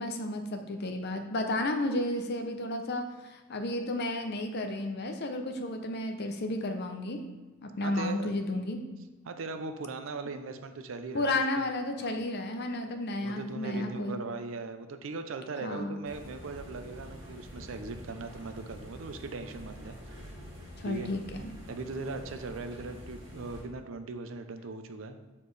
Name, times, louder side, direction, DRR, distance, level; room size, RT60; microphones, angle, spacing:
voice 1, 0.0-7.2 7.6-8.8 11.1-14.2 15.6-16.0 20.8-21.2, left 1 dB, 55° left, 5 dB, 0.6 m, -32 dB
voice 2, 7.8-8.3 9.3-11.6 12.0-12.2 13.2-20.2 20.8-21.1 21.7-25.2, right 3 dB, 65° right, 8 dB, 0.5 m, -39 dB
sound 1, 16.0-23.6, equal, 25° right, 1.7 m, -46 dB
6.9 x 4.2 x 3.2 m, 1.2 s
head